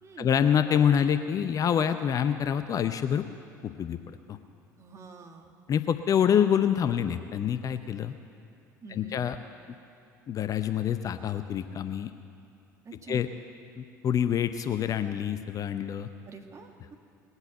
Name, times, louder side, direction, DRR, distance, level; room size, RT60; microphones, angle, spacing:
voice 1, 0.2-3.2 3.6-4.4 5.7-8.1 8.9-9.4 10.3-12.1 13.1-13.3 13.8-16.1, left 8 dB, 35° left, 10 dB, 0.7 m, -26 dB
voice 2, 4.8-5.5 8.8-9.2 12.8-13.2 16.3-17.0, right 4 dB, 30° right, 3 dB, 1.9 m, -46 dB
20.5 x 8.1 x 8.0 m, 2.7 s
figure-of-eight pair, 65°, 10 cm